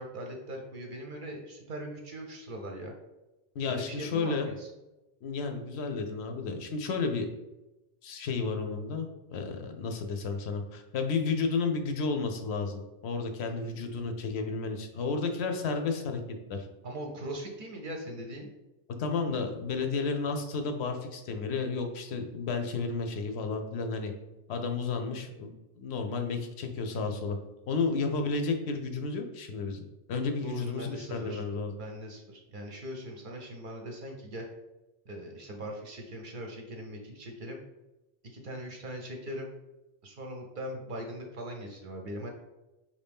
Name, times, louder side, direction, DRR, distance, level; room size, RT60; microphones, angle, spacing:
voice 1, 0.0-2.9 3.7-4.7 13.4-13.7 16.8-18.5 30.4-31.4 31.8-34.5 35.1-37.6 38.2-39.5 40.0-42.3, right 1 dB, 55° right, 1 dB, 0.7 m, -40 dB
voice 2, 3.6-4.5 5.2-7.3 8.0-16.2 16.5-16.7 19.0-24.1 24.5-27.4 27.7-31.7, left 4 dB, 70° left, 5 dB, 0.8 m, -32 dB
4.8 x 2.7 x 3.4 m, 0.99 s
omnidirectional pair, 1.2 m